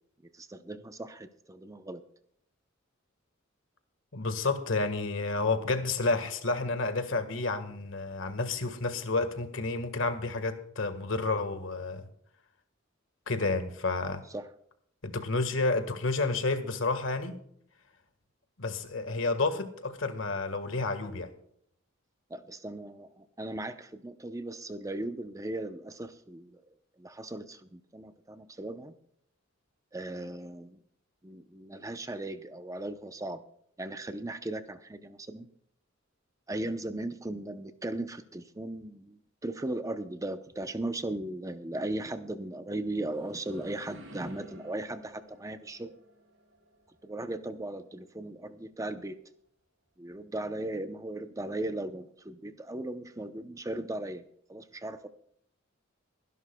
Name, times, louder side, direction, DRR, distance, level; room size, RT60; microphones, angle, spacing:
voice 1, 0.3-2.0 14.3-14.5 22.3-28.9 29.9-30.8 31.2-33.4 33.8-35.5 36.5-45.9 47.0-49.1 50.0-54.2 54.5-55.1, right 1 dB, 15° right, 9 dB, 0.7 m, -37 dB
voice 2, 4.1-12.1 13.3-14.2 15.0-17.3 18.6-21.3, left 3 dB, 70° left, 9 dB, 1.6 m, -30 dB
sound 1, 42.7-48.5, equal, 80° right, 5.5 m, -54 dB
24.0 x 11.0 x 2.3 m, 0.67 s
head